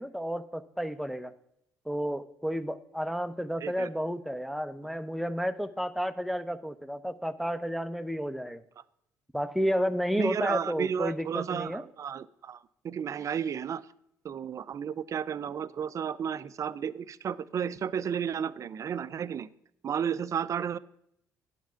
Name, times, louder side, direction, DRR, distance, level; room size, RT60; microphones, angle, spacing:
voice 1, 0.0-1.3 1.9-8.6 9.3-11.8, equal, ahead, 10 dB, 0.8 m, -31 dB
voice 2, 10.2-13.8 14.2-19.5 19.8-20.8, right 8 dB, 45° right, 17 dB, 0.5 m, -33 dB
10.5 x 6.1 x 5.7 m, 0.75 s
hypercardioid pair, 55°, 7 cm